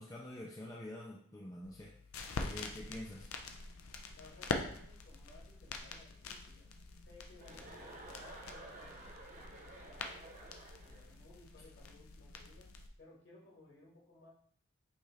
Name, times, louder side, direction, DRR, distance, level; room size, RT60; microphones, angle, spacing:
voice 1, 0.0-2.0 2.4-3.3, left 1 dB, 15° left, -3 dB, 0.4 m, -47 dB
sound 1, 1.6-12.9, left 4 dB, 90° left, 0.5 m, -45 dB
voice 2, 4.2-6.7 7.0-10.2 10.8-12.7 13.0-14.3, left 2 dB, 55° left, -3 dB, 1.4 m, -60 dB
Chuckle chortle, 7.4-11.1, right 2 dB, 35° right, 0.8 m, -52 dB
5.5 x 2.8 x 3.4 m, 0.62 s
head